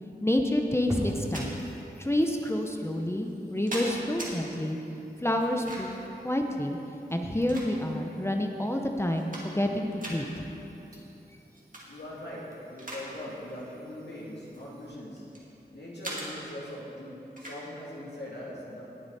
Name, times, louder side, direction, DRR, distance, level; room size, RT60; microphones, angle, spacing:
voice 1, 0.2-1.6 2.0-4.8 5.2-6.8 7.1-10.5, left 1 dB, 15° left, 3 dB, 0.7 m, -28 dB
sound 1, 0.9-14.9, equal, 20° right, 2.4 m, -45 dB
sound 2, 1.0-1.5 2.4-2.5 3.3-4.3 5.4-6.0 7.0-8.1 8.6-8.7 9.0-9.7 10.0-10.2 11.5-11.9 12.3-13.1 13.4-13.6 14.4-15.5 16.0-16.3 17.4-17.6, right 1 dB, 50° right, 2.2 m, -40 dB
voice 2, 11.9-15.2 15.7-18.9, left 1 dB, 80° left, -6 dB, 2.7 m, -41 dB
19.0 x 7.0 x 4.1 m, 3.0 s
wide cardioid pair, 70°, 17 cm